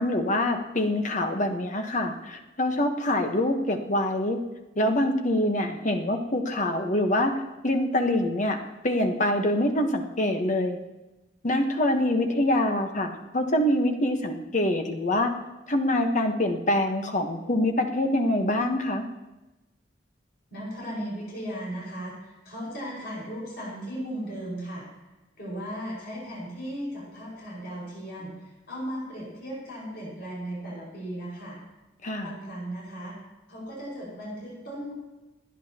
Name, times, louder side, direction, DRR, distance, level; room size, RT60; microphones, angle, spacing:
voice 1, 0.0-4.4 4.8-8.6 8.8-10.8 11.4-15.3 15.7-19.0 32.0-32.3, left 1 dB, 45° left, 5 dB, 1.2 m, -25 dB
voice 2, 20.5-24.9 25.4-31.6 32.2-33.1 33.5-34.9, equal, 65° left, -5 dB, 5.3 m, -36 dB
27.0 x 9.9 x 2.9 m, 1.1 s
head